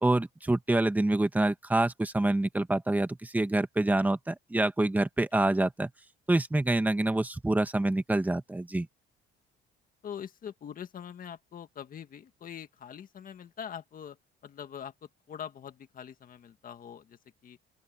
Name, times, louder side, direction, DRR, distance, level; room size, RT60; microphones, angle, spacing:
voice 1, 0.0-5.9 6.3-8.9, right 2 dB, 10° right, 1.4 m, -26 dB
voice 2, 10.0-14.2 14.4-14.9 15.3-17.6, left 8 dB, 40° left, 1.8 m, -43 dB
open air
cardioid pair, 135°, 21 cm